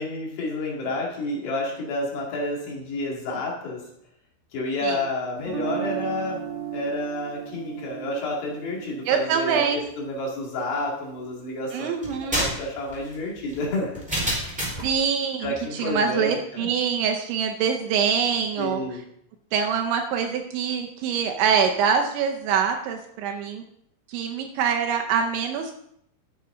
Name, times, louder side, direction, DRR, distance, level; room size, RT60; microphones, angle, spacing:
voice 1, 0.0-3.9 4.5-6.4 6.7-11.9 12.3-14.0 15.4-16.7 18.6-19.0, left 2 dB, 60° left, -2 dB, 3.9 m, -30 dB
Guitar, 5.4-11.4, right 9 dB, 60° right, 2.6 m, -36 dB
voice 2, 9.1-9.8 11.7-12.4 14.8-18.8 19.5-23.6 24.1-25.7, right 7 dB, 80° right, 3 dB, 2.8 m, -24 dB
sound 1, 12.0-14.9, equal, ahead, 3.2 m, -29 dB
13.5 x 8.0 x 3.8 m, 0.73 s
omnidirectional pair, 5.8 m